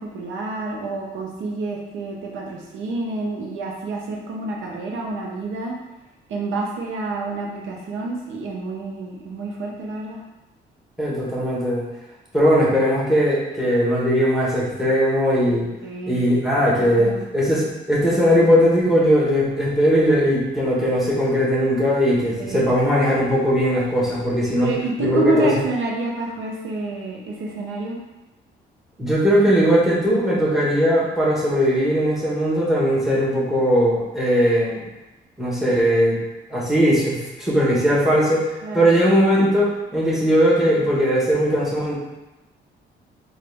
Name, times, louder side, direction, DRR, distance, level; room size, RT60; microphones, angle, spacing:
voice 1, 0.0-5.7 6.3-10.2 15.8-16.4 16.7-17.2 22.4-22.7 24.6-28.0 38.6-38.9, right 3 dB, 80° right, -1 dB, 0.8 m, -28 dB
voice 2, 11.0-11.8 12.3-15.7 16.1-24.7 25.0-25.5 29.0-34.8 35.4-36.2 36.5-41.9, equal, ahead, -6 dB, 1.3 m, -19 dB
3.8 x 2.5 x 3.4 m, 1.0 s
cardioid pair, 90°, 20 cm